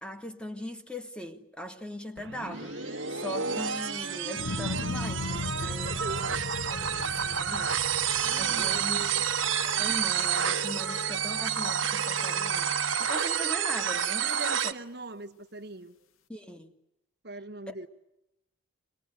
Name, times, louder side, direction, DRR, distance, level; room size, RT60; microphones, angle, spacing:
voice 1, 0.0-6.0 6.7-7.7 8.4-9.1 9.6-14.7 16.3-16.7 17.7-17.8, left 1 dB, 5° left, 1.7 m, -40 dB
sound 1, 2.2-14.7, right 8 dB, 70° right, 1.3 m, -29 dB
sound 2, 2.5-13.0, left 1 dB, 65° left, 5.3 m, -48 dB
sound 3, 4.4-10.7 11.1-11.7, left 2 dB, 80° left, 0.9 m, -37 dB
voice 2, 5.6-6.3 6.6-6.9 8.2-9.2 14.2-15.9 17.2-17.9, right 2 dB, 50° right, 1.3 m, -41 dB
25.0 x 20.5 x 9.3 m
head